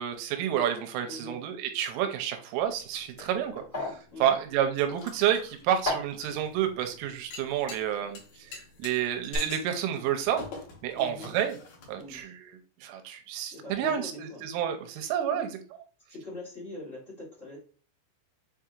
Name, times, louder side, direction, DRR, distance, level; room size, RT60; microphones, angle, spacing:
voice 1, 0.0-8.5 8.8-10.4 10.8-11.6 11.9-15.6, right 10 dB, 90° right, 6 dB, 3.1 m, -30 dB
voice 2, 1.0-1.4 4.1-4.4 10.9-11.3 11.9-12.3 13.5-14.4 15.3-15.5 16.1-17.6, left 2 dB, 85° left, -8 dB, 0.7 m, -42 dB
sound 1, 2.5-12.2, left 3 dB, 70° left, 2.1 m, -48 dB
sound 2, 2.9-8.8 9.1-9.4, left 2 dB, 50° left, 0.8 m, -39 dB
7.4 x 2.8 x 2.4 m, 0.41 s
omnidirectional pair, 5.6 m